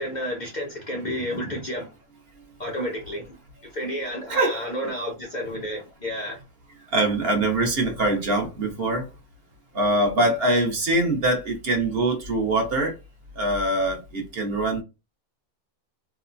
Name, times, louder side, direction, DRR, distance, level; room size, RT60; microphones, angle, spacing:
voice 1, 0.0-1.9 2.6-3.4 3.6-6.4, equal, 60° left, 0.4 m, -31 dB
voice 2, 4.3-4.6 6.9-9.0 9.7-12.9 13.4-14.8, right 2 dB, 50° right, 1.0 m, -23 dB
3.1 x 2.1 x 2.5 m
omnidirectional pair, 1.5 m